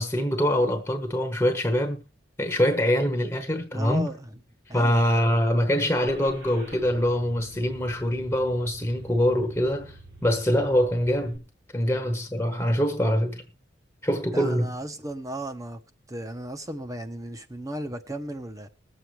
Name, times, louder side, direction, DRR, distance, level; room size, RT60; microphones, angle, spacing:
voice 1, 0.0-2.0 2.4-4.1 4.7-11.4 11.7-13.4 14.0-14.7, equal, 10° left, 1.1 m, -24 dB
voice 2, 3.7-4.3 4.7-5.0 14.3-15.8 16.1-18.7, right 1 dB, 20° right, 1.1 m, -35 dB
Car / Engine starting, 5.9-11.4, right 1 dB, 80° right, 4.5 m, -47 dB
21.0 x 7.8 x 3.3 m
head